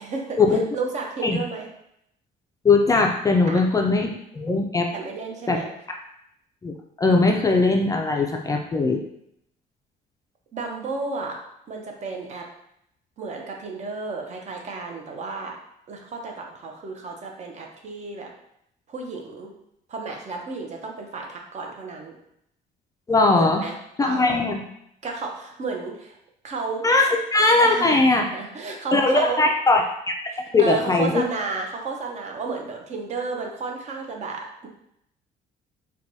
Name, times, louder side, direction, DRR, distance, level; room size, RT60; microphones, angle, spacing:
voice 1, 0.0-0.4 0.7-1.7 3.5-3.6 4.9-5.7 10.5-11.4 11.7-12.5 13.2-15.6 15.9-18.3 18.9-19.5 19.9-22.1 23.3-23.8 24.0-24.4 25.0-26.2 26.4-26.8 27.6-29.5 30.6-34.7, right 4 dB, 45° right, 1 dB, 0.7 m, -32 dB
voice 2, 2.6-4.9 5.5-5.6 5.9-6.0 6.6-9.0 23.1-23.6 24.0-24.6 26.8-28.2 28.9-30.2 30.5-31.2, left 3 dB, 20° left, 2 dB, 0.4 m, -20 dB
4.4 x 2.2 x 2.7 m, 0.76 s
cardioid pair, 110°, 17 cm